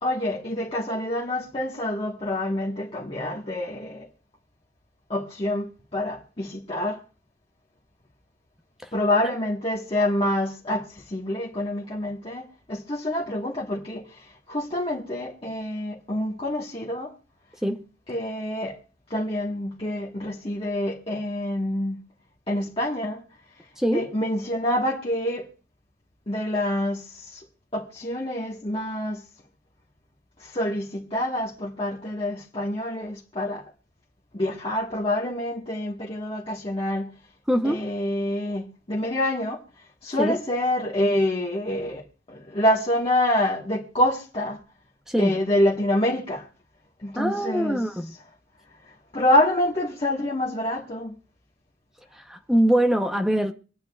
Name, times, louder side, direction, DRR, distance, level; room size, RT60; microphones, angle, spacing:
voice 1, 0.0-4.1 5.1-7.0 8.9-17.1 18.1-18.8 19.1-22.0 22.5-23.2 23.9-25.5 26.3-27.4 27.7-29.2 30.4-33.7 34.3-37.1 37.6-39.6 40.0-44.6 45.2-46.5 47.0-47.8 49.1-51.1, left 1 dB, 35° left, 1.4 m, -27 dB
voice 2, 23.8-24.1 37.5-37.8 40.2-40.4 45.1-45.4 47.2-48.1 52.1-53.5, right 1 dB, 5° right, 0.7 m, -23 dB
25.0 x 9.0 x 2.3 m
head